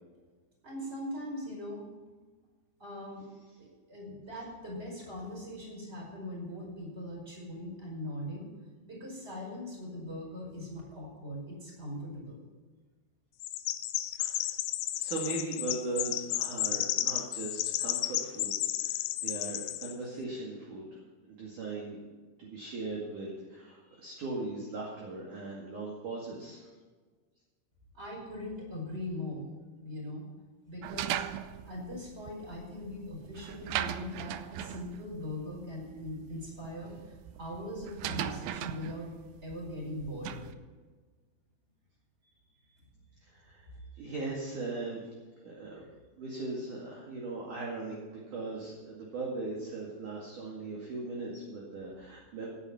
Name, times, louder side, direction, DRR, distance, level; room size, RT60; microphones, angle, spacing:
voice 1, 0.6-2.2 2.8-3.3 3.6-8.5 8.8-12.5 27.9-30.3 30.7-31.2 31.6-39.1 39.4-40.5, left 1 dB, 15° right, -2 dB, 4.8 m, -41 dB
Chirp tweet, 13.4-19.9, left 14 dB, 80° left, 2.3 m, -33 dB
voice 2, 14.0-14.5 15.0-21.0 21.3-22.0 22.4-26.7 43.2-43.7 43.9-45.0 45.4-45.8 46.2-52.5, right 3 dB, 50° right, -3 dB, 3.2 m, -39 dB
sound 1, 30.8-40.5, right 12 dB, 80° right, 2.6 m, -39 dB
16.5 x 10.5 x 4.3 m, 1.4 s
omnidirectional pair, 5.2 m